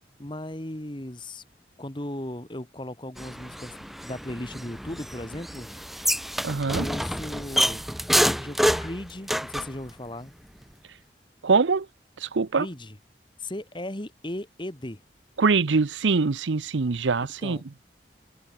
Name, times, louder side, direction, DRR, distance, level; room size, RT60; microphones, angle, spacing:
voice 1, 0.2-1.4 1.8-3.7 4.0-5.7 6.8-7.8 8.4-10.3 12.6-12.9 13.4-15.0 17.4-17.6, left 1 dB, 25° left, 1.9 m, -36 dB
sound 1, 3.2-9.7, equal, ahead, 1.6 m, -27 dB
voice 2, 6.4-6.9 11.4-11.9 12.2-12.7 15.4-17.6, right 4 dB, 90° right, 0.7 m, -23 dB
head